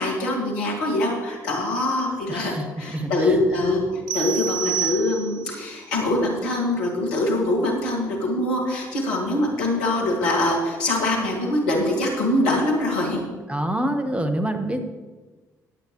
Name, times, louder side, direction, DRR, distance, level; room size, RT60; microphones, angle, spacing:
voice 1, 0.0-13.2, left 1 dB, 70° left, -1 dB, 2.4 m, -23 dB
voice 2, 2.3-3.3 13.5-14.8, right 1 dB, 10° right, 6 dB, 1.6 m, -26 dB
sound 1, 4.1-5.6, right 9 dB, 70° right, 0.6 m, -28 dB
17.5 x 8.8 x 3.3 m, 1.3 s
figure-of-eight pair, 45°, 9 cm